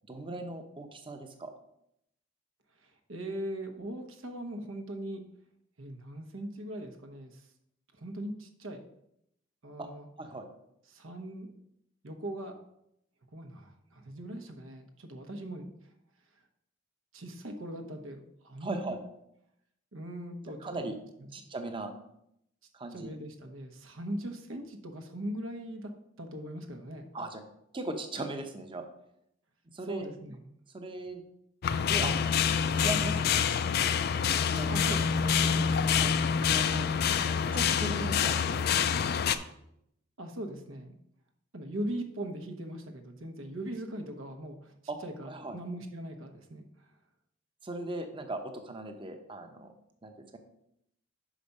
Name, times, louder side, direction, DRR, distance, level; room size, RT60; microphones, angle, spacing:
voice 1, 0.1-1.5 9.8-9.9 10.2-10.5 18.6-19.0 20.6-21.0 21.3-21.9 22.7-23.1 27.1-27.4 27.7-28.9 29.7-30.1 30.7-31.2 31.9-32.2 32.8-33.4 34.5-35.5 36.0-36.1 36.4-36.9 37.5-39.5 44.9-45.0 45.2-45.6 47.6-49.7 50.0-50.4, right 2 dB, 25° right, 6 dB, 0.8 m, -38 dB
voice 2, 3.1-5.2 5.8-7.5 8.0-8.8 9.6-10.1 10.9-11.5 12.0-12.6 13.3-15.7 17.1-19.0 19.9-20.9 22.9-25.9 26.2-27.0 29.9-30.4 34.7-35.8 40.2-40.9 41.5-44.7 45.0-46.6, right 1 dB, 80° right, 6 dB, 1.0 m, -40 dB
sound 1, 31.6-39.4, left 7 dB, 50° left, 0.4 m, -27 dB
5.8 x 5.0 x 5.3 m, 0.77 s
head